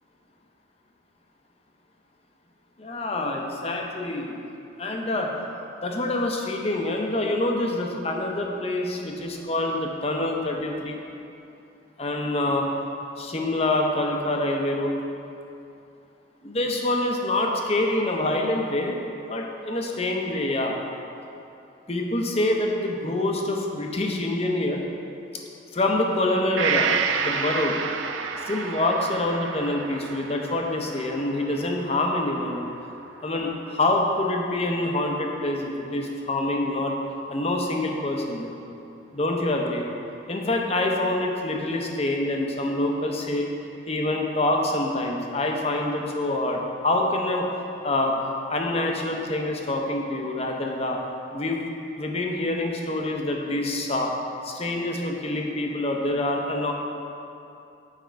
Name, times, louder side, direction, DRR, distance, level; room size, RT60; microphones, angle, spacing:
voice 1, 2.8-4.4 4.8-5.3 5.8-11.0 12.0-12.7 13.2-14.9 16.4-19.0 19.3-20.8 21.9-24.8 25.7-26.9 27.2-27.7 28.5-32.6 33.2-36.9 37.3-38.5 39.1-39.8 40.3-43.5 43.9-47.5 47.8-48.1 48.5-51.0 51.3-51.7 52.0-54.1 54.4-56.7, left 2 dB, 30° left, 1 dB, 0.7 m, -26 dB
Gong, 26.6-34.2 34.6-34.7, right 6 dB, 85° right, 0.4 m, -31 dB
7.3 x 5.2 x 4.5 m, 2.7 s
head